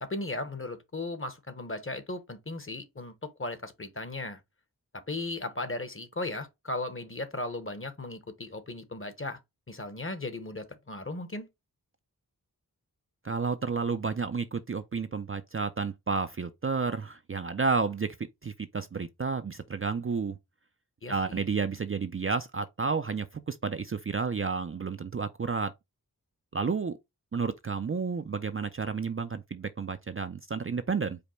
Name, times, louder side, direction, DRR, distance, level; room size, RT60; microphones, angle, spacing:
voice 1, 0.0-4.4 4.9-9.4 9.7-11.5 21.0-21.4, left 2 dB, 35° left, 0.9 m, -36 dB
voice 2, 13.2-18.1 18.4-20.4 21.1-25.7 26.5-27.0 27.3-31.2, right 5 dB, 35° right, 0.4 m, -31 dB
5.1 x 2.1 x 4.2 m
wide cardioid pair, 50°, 38 cm